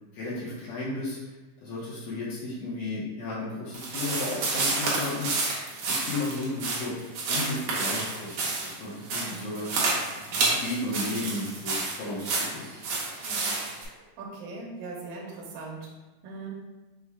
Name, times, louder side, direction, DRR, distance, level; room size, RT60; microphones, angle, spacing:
voice 1, 0.1-1.4 1.6-5.3 5.9-6.9 7.3-9.7 10.3-12.8, left 2 dB, 75° left, -8 dB, 1.5 m, -34 dB
sound 1, 3.7-13.8, right 3 dB, 70° right, 2.0 m, -29 dB
voice 2, 9.2-9.5 13.2-13.5 13.8-15.9 16.2-16.5, right 3 dB, 85° right, -2 dB, 2.5 m, -40 dB
5.9 x 2.1 x 3.5 m, 1.1 s
omnidirectional pair, 3.8 m